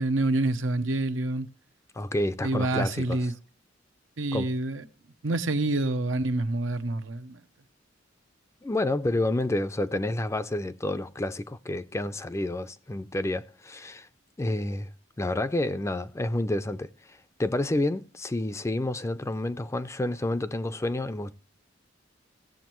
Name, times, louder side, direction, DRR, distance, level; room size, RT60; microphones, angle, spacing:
voice 1, 0.0-1.5 2.4-3.3 4.2-4.8 5.2-7.4, right 2 dB, 85° right, 0.8 m, -27 dB
voice 2, 2.0-3.2 4.3-4.5 8.6-14.1 14.4-14.9 15.2-21.3, left 1 dB, 15° left, 0.4 m, -29 dB
17.0 x 7.7 x 3.0 m
head